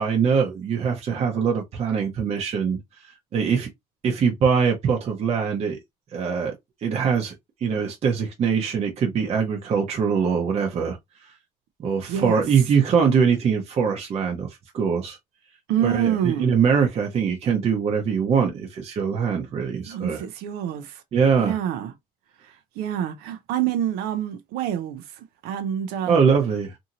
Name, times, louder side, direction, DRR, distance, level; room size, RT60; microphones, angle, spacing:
voice 1, 0.0-2.8 3.3-3.7 4.0-5.8 6.1-6.5 6.8-7.3 7.6-11.0 11.8-14.5 14.7-15.2 15.8-20.2 21.1-21.6 26.1-26.7, right 6 dB, 40° right, 0.7 m, -22 dB
voice 2, 12.1-12.4 15.7-16.6 19.9-21.0 21.4-21.9 22.4-26.2, right 9 dB, 90° right, 0.5 m, -27 dB
2.7 x 2.6 x 2.8 m
cardioid pair, 135°, 16 cm